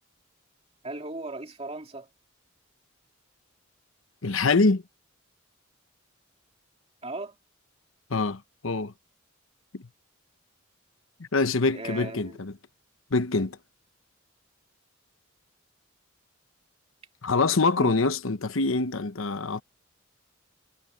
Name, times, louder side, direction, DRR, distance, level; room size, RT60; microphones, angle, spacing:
voice 1, 0.8-2.1 7.0-7.3 11.7-12.4 17.8-18.0, right 2 dB, 30° right, 2.8 m, -37 dB
voice 2, 4.2-4.8 8.1-8.9 9.7-9.9 11.2-12.6 13.1-13.6 17.2-19.6, left 3 dB, 75° left, 1.0 m, -25 dB
head